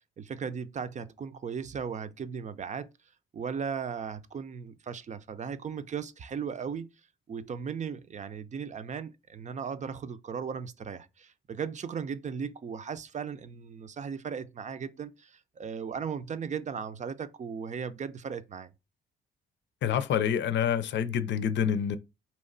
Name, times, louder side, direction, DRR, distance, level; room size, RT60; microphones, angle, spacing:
voice 1, 0.2-2.9 3.3-6.9 7.3-18.7, right 6 dB, 35° right, 0.6 m, -37 dB
voice 2, 19.8-22.0, left 8 dB, 65° left, 0.6 m, -27 dB
4.3 x 3.1 x 3.9 m
cardioid pair, 90°, 20 cm